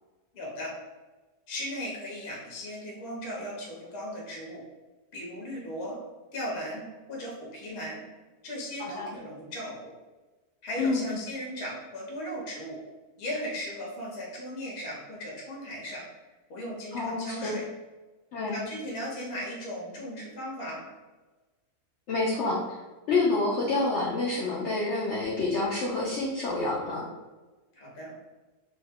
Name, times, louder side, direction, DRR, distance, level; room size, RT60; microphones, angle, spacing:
voice 1, 0.3-0.7 1.5-4.6 5.1-6.0 6.3-8.0 8.4-9.9 10.6-12.8 13.2-16.0 16.5-17.6 18.5-20.8 27.8-28.1, equal, 50° left, -3 dB, 0.9 m, -37 dB
voice 2, 8.8-9.1 10.8-11.2 16.9-17.6 18.3-18.6 22.1-22.6 23.1-27.0, left 3 dB, 85° left, -4 dB, 0.6 m, -28 dB
2.7 x 2.1 x 3.4 m, 1.2 s
omnidirectional pair, 1.8 m